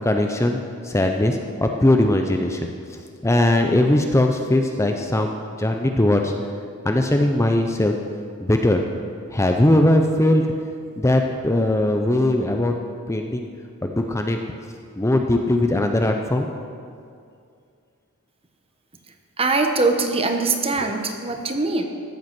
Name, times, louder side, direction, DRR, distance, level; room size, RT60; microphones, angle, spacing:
voice 1, 0.0-2.7 3.2-6.3 6.8-7.9 8.4-8.8 9.3-10.5 11.0-12.7 13.1-13.5 13.8-14.4 15.0-16.5, left 1 dB, 15° left, 3 dB, 0.6 m, -20 dB
voice 2, 19.4-21.8, right 3 dB, 25° right, 5 dB, 1.0 m, -22 dB
14.5 x 8.0 x 6.1 m, 2.3 s
head